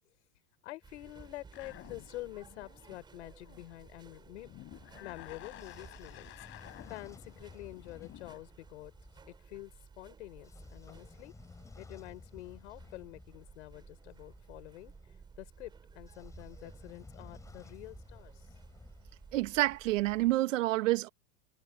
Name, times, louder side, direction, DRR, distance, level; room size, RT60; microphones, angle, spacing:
voice 1, 0.6-4.5 5.0-6.3 6.9-8.9 9.5-11.3 11.8-14.9 15.4-18.5, left 18 dB, 65° left, 5.2 m, -47 dB
sound 1, 0.8-20.4, right 5 dB, 10° right, 5.3 m, -56 dB
sound 2, 1.5-3.9 4.2-8.4, left 19 dB, 30° left, 4.6 m, -53 dB
Train / Sliding door, 5.3-9.4 10.2-15.0 15.9-19.8, left 4 dB, 10° left, 7.4 m, -55 dB
voice 2, 19.3-21.1, right 17 dB, 75° right, 2.1 m, -28 dB
supercardioid pair, 175°, 38 cm